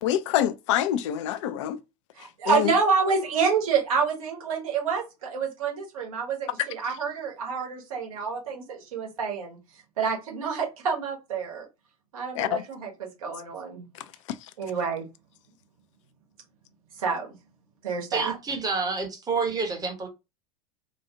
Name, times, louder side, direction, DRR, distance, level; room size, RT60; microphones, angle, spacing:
voice 1, 0.0-1.8 2.5-2.7 12.4-12.6, left 12 dB, 55° left, 0.4 m, -25 dB
voice 2, 2.2-9.6 10.0-11.6 12.1-13.9 14.6-15.1 17.0-17.3 17.8-18.3, right 5 dB, 65° right, 1.1 m, -28 dB
voice 3, 18.1-20.1, right 4 dB, 20° right, 0.9 m, -28 dB
2.7 x 2.3 x 2.8 m
figure-of-eight pair, 80°, 20 cm